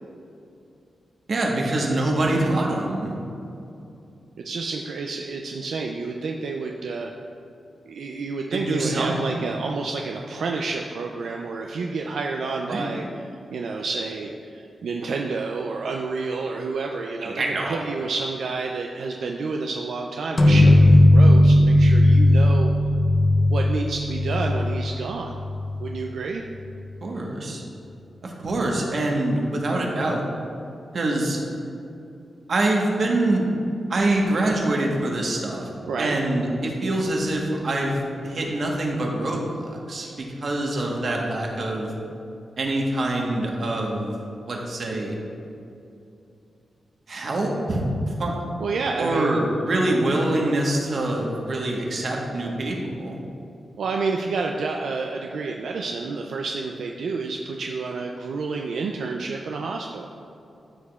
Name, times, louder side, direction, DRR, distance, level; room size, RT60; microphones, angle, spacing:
voice 1, 1.3-3.1 8.5-9.5 12.6-12.9 17.2-17.8 27.0-27.6 28.2-30.2 30.9-31.4 32.5-33.4 33.9-35.7 36.0-41.9 42.6-44.1 44.5-45.2 47.1-47.9 48.2-48.3 49.0-53.2, right 1 dB, 55° right, -1 dB, 1.1 m, -25 dB
voice 2, 4.4-7.1 7.9-22.7 23.5-25.4 25.8-26.4 35.9-36.2 40.0-40.1 48.6-49.3 53.8-60.1, right 4 dB, 85° right, 1 dB, 0.4 m, -29 dB
sound 1, 20.4-25.9, left 1 dB, 30° left, 0.6 m, -16 dB
12.5 x 4.9 x 2.3 m, 2.7 s
wide cardioid pair, 115°, 0 cm